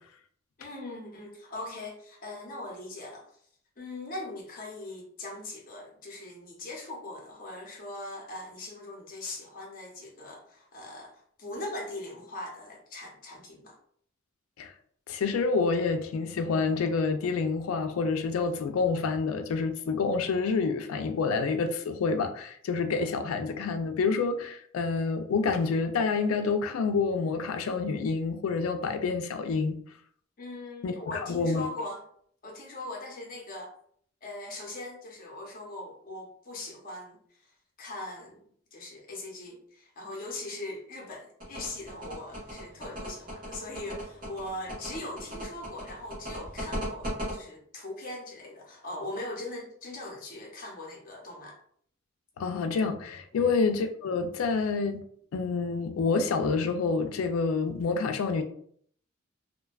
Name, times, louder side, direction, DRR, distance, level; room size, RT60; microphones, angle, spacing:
voice 1, 0.6-3.3 3.8-13.8 30.4-32.0 32.4-33.7 34.2-37.2 37.8-51.6 53.3-53.5, left 2 dB, 40° left, 0.7 m, -40 dB
voice 2, 15.1-29.8 30.8-31.7 52.4-55.0 55.3-58.4, left 4 dB, 80° left, 0.3 m, -28 dB
sound 1, 41.4-47.3, equal, 45° right, 1.1 m, -37 dB
2.5 x 2.2 x 2.3 m
head